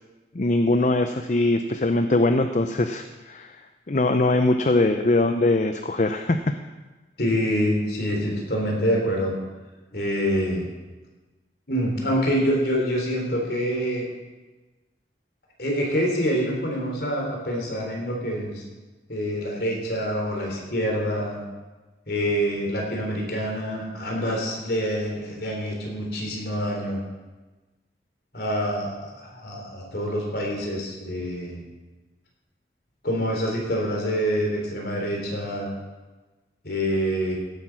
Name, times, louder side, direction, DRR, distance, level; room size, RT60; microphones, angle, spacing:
voice 1, 0.3-3.6 3.9-6.4, left 2 dB, 40° left, 7 dB, 0.6 m, -22 dB
voice 2, 7.2-9.4 9.9-10.7 11.7-14.1 15.6-18.6 19.1-21.4 22.1-27.0 28.3-31.6 33.0-35.7 36.6-37.4, equal, 60° left, 0 dB, 3.8 m, -26 dB
16.0 x 8.4 x 6.1 m, 1.2 s
head